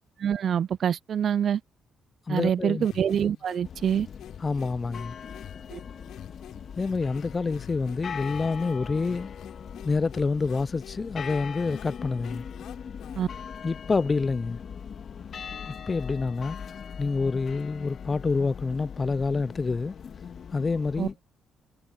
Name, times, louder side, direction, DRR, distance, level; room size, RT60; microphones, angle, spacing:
voice 1, 0.2-1.6 2.3-4.1 5.7-5.8 13.2-13.3 21.0-21.1, right 8 dB, 60° right, 0.3 m, -25 dB
voice 2, 2.3-2.9 4.4-5.2 6.8-9.3 9.8-12.4 13.6-14.6 15.7-16.6 17.0-19.9 20.5-21.1, left 4 dB, 30° left, 0.4 m, -27 dB
sound 1, 2.8-13.4, left 12 dB, 80° left, 7.7 m, -48 dB
sound 2, 3.6-21.1, left 7 dB, 55° left, 2.2 m, -40 dB
cardioid pair, 90°, 0 cm